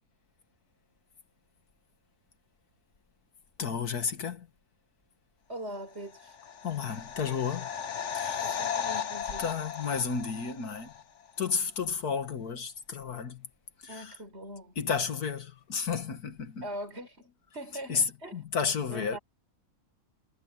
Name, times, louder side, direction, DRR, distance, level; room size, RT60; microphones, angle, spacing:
voice 1, 3.6-4.5 6.6-7.7 8.1-8.4 9.4-10.9 11.4-13.5 13.8-14.1 14.8-16.7 17.9-19.2, left 6 dB, 90° left, 2.4 m, -32 dB
voice 2, 5.5-6.4 8.4-9.5 13.9-14.8 16.6-18.4 18.9-19.2, equal, 45° right, 5.5 m, -41 dB
sound 1, 6.2-11.0 11.3-11.4, left 7 dB, 55° left, 1.4 m, -36 dB
omnidirectional pair, 1.6 m